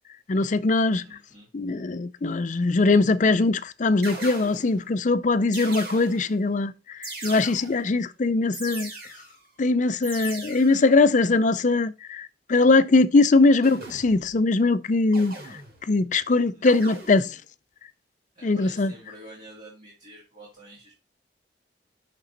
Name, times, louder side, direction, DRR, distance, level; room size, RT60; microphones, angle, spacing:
voice 1, 0.3-1.0 1.5-8.9 9.6-15.3 15.9-17.4 18.4-18.9, left 3 dB, 45° left, 0.5 m, -21 dB
voice 2, 1.0-1.5 16.5-17.0 18.3-20.9, right 1 dB, 35° right, 2.6 m, -48 dB
sound 1, 3.2-3.5 4.0-4.9 5.5-6.4 7.0-7.9 8.5-9.4 10.0-10.9 13.6-14.4 15.1-16.0 16.6-17.4, right 2 dB, 60° right, 2.8 m, -39 dB
6.5 x 6.1 x 4.2 m
head